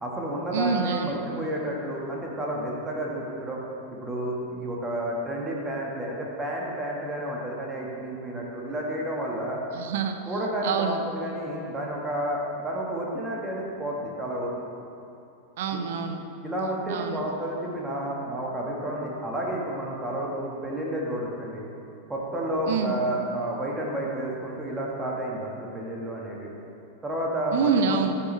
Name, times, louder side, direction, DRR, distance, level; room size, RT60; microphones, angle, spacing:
voice 1, 0.0-3.6 3.9-9.6 10.3-14.5 15.7-15.8 16.4-21.6 22.1-26.5 27.0-27.8, right 1 dB, 15° right, -3 dB, 1.7 m, -31 dB
voice 2, 0.5-1.1 9.7-10.2 10.6-11.0 15.6-16.2 16.9-17.2 22.7-23.0 27.5-28.2, right 6 dB, 55° right, 6 dB, 0.7 m, -26 dB
15.0 x 7.3 x 3.4 m, 2.7 s
figure-of-eight pair, 90°, 0 cm